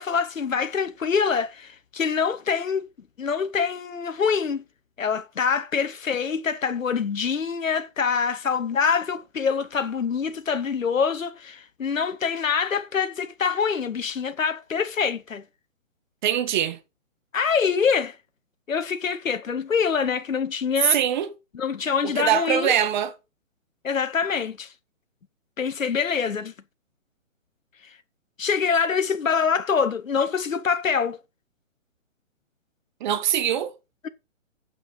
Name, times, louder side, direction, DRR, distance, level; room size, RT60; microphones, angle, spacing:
voice 1, 0.0-2.8 3.2-4.6 5.0-15.4 17.3-18.2 18.7-21.0 21.5-22.7 23.8-24.7 25.6-26.5 27.8-28.0 28.4-31.2, left 6 dB, 85° left, 1.1 m, -25 dB
voice 2, 16.2-16.8 20.8-21.3 22.0-23.1 33.0-33.7, right 10 dB, 35° right, 1.7 m, -23 dB
8.9 x 6.3 x 5.4 m
hypercardioid pair, 140°, 38 cm